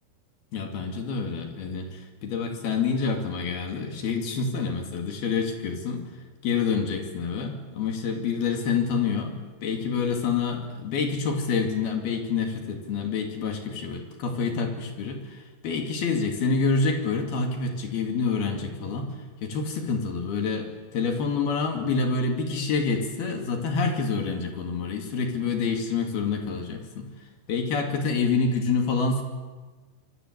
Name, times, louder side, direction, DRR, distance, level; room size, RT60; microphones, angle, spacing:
voice 1, 0.5-6.1 6.4-19.1 19.4-27.1 27.5-29.2, left 5 dB, 75° left, 3 dB, 4.5 m, -27 dB
26.0 x 25.0 x 8.3 m, 1.3 s
omnidirectional pair, 4.5 m